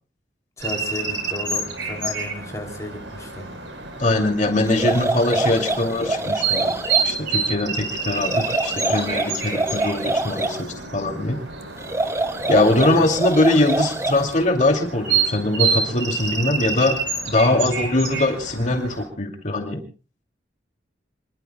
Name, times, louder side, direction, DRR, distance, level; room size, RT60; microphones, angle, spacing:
voice 1, 0.6-3.5 13.0-13.1 17.5-17.8, left 1 dB, 15° left, 2 dB, 2.9 m, -34 dB
sound 1, 0.6-19.0, right 5 dB, 90° right, 6.0 m, -28 dB
voice 2, 4.0-6.7 7.0-11.4 12.5-17.0 17.3-19.8, left 2 dB, 40° left, 3 dB, 2.6 m, -21 dB
sound 2, 4.7-7.1 8.1-10.6 11.8-14.3, right 2 dB, 15° right, 1.0 m, -25 dB
28.0 x 22.0 x 2.3 m, 0.35 s
head